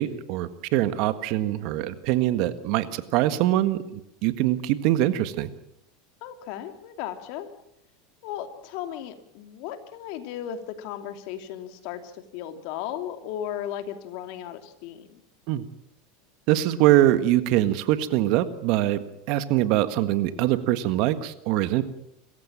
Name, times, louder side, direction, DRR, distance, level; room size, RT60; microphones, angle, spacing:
voice 1, 0.0-3.8 4.2-5.5 15.5-15.7 16.5-19.0 19.3-21.8, right 14 dB, 60° right, 12 dB, 1.6 m, -23 dB
voice 2, 6.2-7.5 8.2-15.2, left 10 dB, 60° left, 7 dB, 2.8 m, -36 dB
26.5 x 15.0 x 7.5 m, 0.82 s
supercardioid pair, 115°, 0 cm